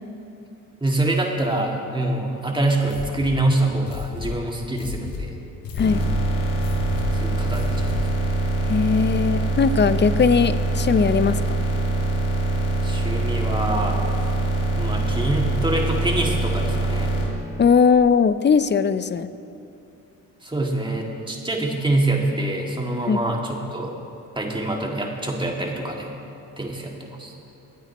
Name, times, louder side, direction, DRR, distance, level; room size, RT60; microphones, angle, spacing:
voice 1, 0.8-5.3 7.2-8.1 12.8-14.0 14.8-17.1 20.4-23.9 24.4-26.1 26.6-27.3, right 2 dB, 15° right, 0 dB, 2.2 m, -25 dB
sound 1, 2.8-8.2, left 4 dB, 70° left, 1.8 m, -34 dB
sound 2, 5.8-17.2, right 2 dB, 90° left, 2.3 m, -23 dB
voice 2, 8.7-11.7 17.6-19.3 23.1-23.2, left 6 dB, 30° left, 14 dB, 0.6 m, -19 dB
23.0 x 9.1 x 3.0 m, 2.7 s
supercardioid pair, 60°, 37 cm